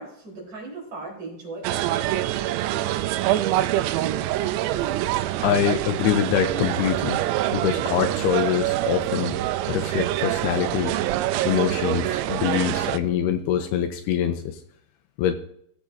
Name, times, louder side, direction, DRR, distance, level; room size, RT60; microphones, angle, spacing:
voice 1, 0.0-2.5, right 3 dB, 35° right, -3 dB, 4.9 m, -39 dB
sound 1, 1.6-13.0, right 14 dB, 85° right, 2.7 m, -25 dB
voice 2, 5.4-7.2 7.5-9.4 9.7-11.0 11.5-14.6 15.2-15.3, left 9 dB, 80° left, 8 dB, 2.6 m, -24 dB
18.5 x 7.5 x 2.7 m, 0.68 s
omnidirectional pair, 4.9 m